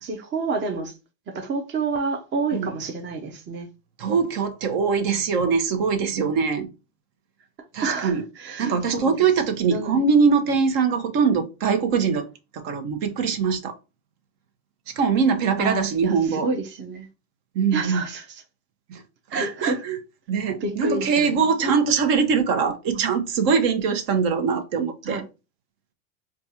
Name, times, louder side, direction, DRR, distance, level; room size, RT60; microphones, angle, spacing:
voice 1, 0.0-0.9 1.3-3.7 5.1-5.3 7.8-9.1 9.7-10.0 15.6-17.1 17.7-18.4 19.3-19.8 20.6-21.5 22.9-23.0 25.0-25.2, right 4 dB, 30° right, 0.7 m, -29 dB
voice 2, 4.0-6.7 7.7-8.2 8.6-12.3 12.5-13.8 14.9-16.5 17.5-18.0 18.9-19.0 19.3-20.0 20.3-25.2, right 5 dB, 55° right, 1.0 m, -22 dB
4.5 x 2.4 x 2.7 m
hypercardioid pair, 95°, 41 cm